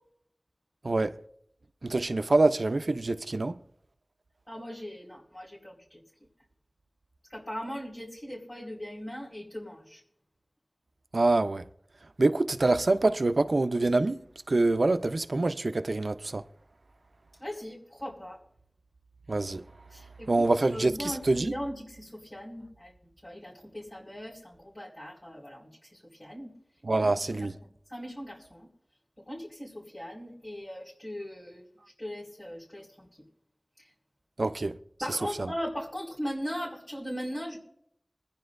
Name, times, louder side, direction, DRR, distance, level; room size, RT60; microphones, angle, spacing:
voice 1, 1.8-3.5 11.1-11.6 12.2-14.2 14.5-16.4 19.3-19.6 20.3-21.5 26.8-27.5 34.4-34.7 35.1-35.5, right 2 dB, 85° right, 0.6 m, -25 dB
voice 2, 4.5-6.0 7.3-10.0 17.4-18.4 19.9-22.9 23.2-25.7 26.2-26.5 27.3-27.5 27.9-28.6 29.3-31.6 32.0-32.8 35.0-37.6, equal, 45° left, 4.7 m, -39 dB
24.0 x 10.5 x 2.6 m
wide cardioid pair, 45°, 0 cm